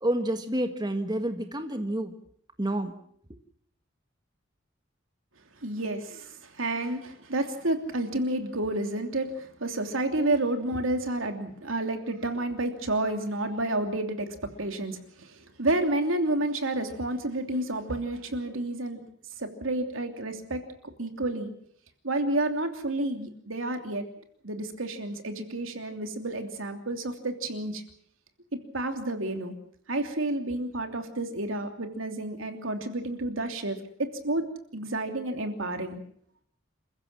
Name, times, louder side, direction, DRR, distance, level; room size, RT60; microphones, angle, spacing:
voice 1, 0.0-2.1 2.6-2.9, right 1 dB, 20° right, 7 dB, 1.6 m, -29 dB
voice 2, 5.6-19.0 19.4-20.6 21.0-21.5 22.0-24.1 24.4-27.8 28.7-29.5 29.9-34.4 34.7-36.0, right 2 dB, 85° right, 6 dB, 3.0 m, -30 dB
28.0 x 15.5 x 7.5 m, 0.65 s
head